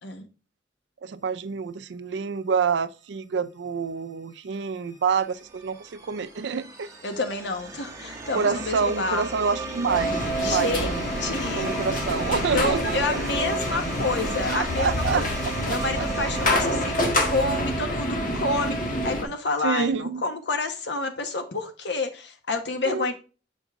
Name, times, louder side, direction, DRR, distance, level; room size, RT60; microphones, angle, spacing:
voice 1, 1.0-6.9 8.3-11.1 11.6-13.2 14.5-16.6 19.6-20.2 22.9-23.1, right 5 dB, 70° right, 0.4 m, -28 dB
sound 1, 4.3-18.1, right 2 dB, 15° right, 1.5 m, -37 dB
voice 2, 7.0-9.2 10.4-11.7 12.5-15.3 15.7-23.1, left 3 dB, 65° left, 1.1 m, -29 dB
sound 2, 9.9-19.2, equal, 50° left, 1.6 m, -27 dB
7.2 x 5.3 x 3.5 m
head